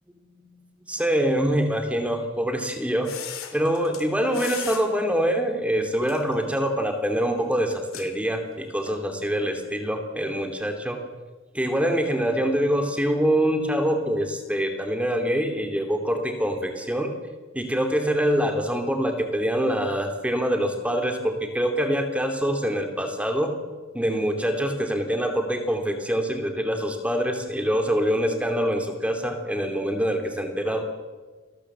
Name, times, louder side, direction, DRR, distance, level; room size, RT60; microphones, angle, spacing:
voice 1, 0.9-3.1 3.5-11.0 11.5-17.1 17.5-23.6 23.9-30.8, equal, 5° right, 5 dB, 2.8 m, -25 dB
sound 1, 3.0-4.0 4.3-4.8 6.0-6.6 7.7-8.1 8.9-9.0, left 10 dB, 90° left, 3.2 m, -37 dB
28.5 x 20.0 x 7.5 m, 1.4 s
head